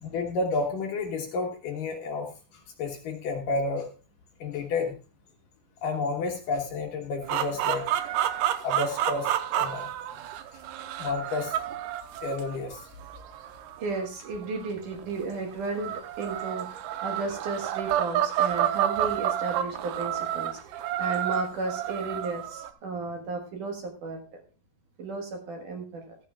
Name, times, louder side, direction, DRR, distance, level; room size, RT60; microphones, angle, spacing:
voice 1, 0.0-2.3 2.8-3.9 4.4-4.9 5.8-7.8 8.6-9.9 11.0-11.6 12.2-12.9, left 3 dB, 65° left, 2 dB, 2.5 m, -30 dB
sound 1, 7.2-15.0 15.7-22.7, right 11 dB, 80° right, 2.7 m, -30 dB
voice 2, 13.8-24.4 25.0-26.2, right 3 dB, 60° right, 3 dB, 2.6 m, -34 dB
15.0 x 14.0 x 2.4 m, 0.35 s
omnidirectional pair, 4.8 m